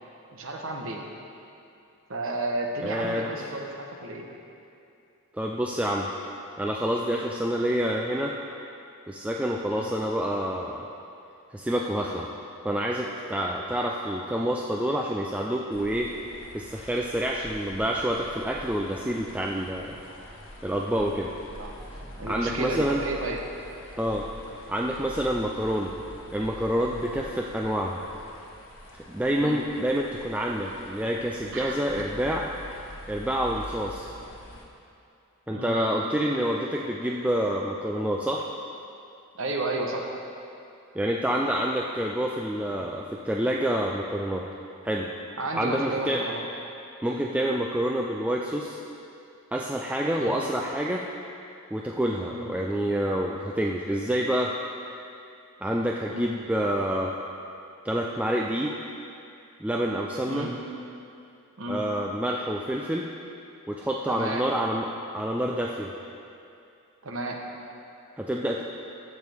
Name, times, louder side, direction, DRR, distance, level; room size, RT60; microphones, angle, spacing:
voice 1, 0.3-1.0 2.1-4.3 9.7-9.9 21.6-21.8 22.2-23.4 29.4-29.6 31.5-32.1 35.5-35.8 39.4-40.1 45.4-46.4 50.2-50.4 52.3-52.5 56.1-56.3 60.3-60.5 61.6-61.8 64.1-64.5 67.0-67.4, right 2 dB, 65° right, 2 dB, 1.0 m, -32 dB
voice 2, 2.8-3.5 5.3-6.1 6.6-8.3 9.1-10.9 11.5-12.3 12.6-16.1 16.5-20.0 20.6-21.3 22.3-23.0 24.0-24.3 24.7-25.9 26.3-28.0 28.9-32.5 33.1-34.1 35.5-38.5 40.9-44.5 44.8-45.1 45.5-46.2 47.0-48.8 49.5-51.0 51.7-54.5 55.6-57.1 57.8-58.7 59.6-60.5 61.7-63.1 63.7-64.9 65.1-65.9 68.2-68.6, equal, 5° right, -1 dB, 0.3 m, -27 dB
sound 1, 15.7-34.6, equal, 70° left, 1.4 m, -45 dB
15.0 x 6.3 x 3.5 m, 2.6 s
head